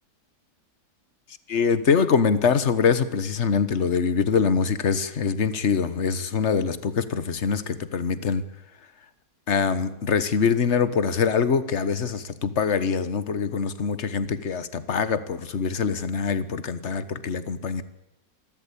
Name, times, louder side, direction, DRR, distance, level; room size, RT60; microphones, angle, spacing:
voice 1, 1.5-8.4 9.5-17.8, left 6 dB, 45° left, 13 dB, 1.5 m, -24 dB
26.5 x 13.0 x 8.6 m, 0.88 s
omnidirectional pair, 1.8 m